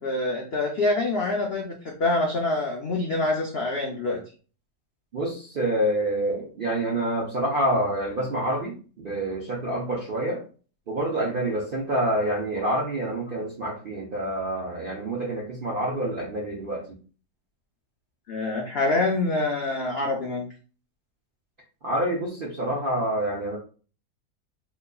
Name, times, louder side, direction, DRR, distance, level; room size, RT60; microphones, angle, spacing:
voice 1, 0.0-4.2 18.3-20.5 22.7-22.8, left 2 dB, 75° left, 0 dB, 0.5 m, -26 dB
voice 2, 5.1-10.4 10.9-17.0 21.8-23.6, right 1 dB, 65° right, -2 dB, 0.5 m, -27 dB
3.8 x 3.0 x 2.3 m, 0.38 s
omnidirectional pair, 1.8 m